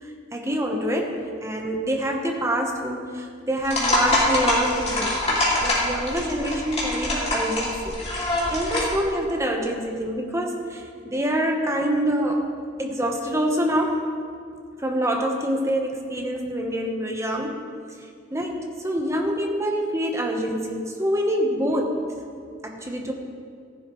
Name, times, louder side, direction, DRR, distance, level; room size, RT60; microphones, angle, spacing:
voice 1, 0.0-8.0 8.5-12.5 12.8-14.1 14.8-17.6 18.3-22.0 22.6-23.1, equal, 15° right, 1 dB, 1.1 m, -26 dB
sound 1, 3.6-9.0, left 1 dB, 35° left, 2.7 m, -24 dB
14.5 x 10.5 x 3.2 m, 2.3 s
head